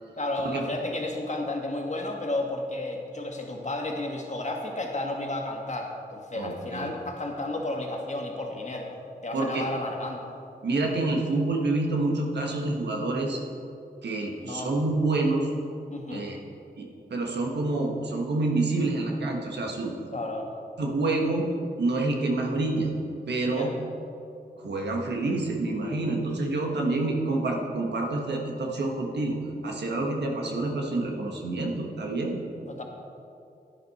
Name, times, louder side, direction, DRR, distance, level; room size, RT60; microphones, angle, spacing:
voice 1, 0.2-10.3 14.4-14.7 15.9-16.3 20.1-20.5 23.4-23.7 32.7-32.8, left 2 dB, 45° left, 1 dB, 1.8 m, -32 dB
voice 2, 6.3-7.0 9.3-9.6 10.6-13.4 14.0-15.5 16.1-16.4 16.8-19.9 20.8-21.5 21.8-22.9 23.3-23.7 24.6-29.4 29.6-32.4, right 2 dB, 85° right, 1 dB, 1.4 m, -27 dB
11.5 x 9.6 x 4.2 m, 2.6 s
cardioid pair, 45°, 17 cm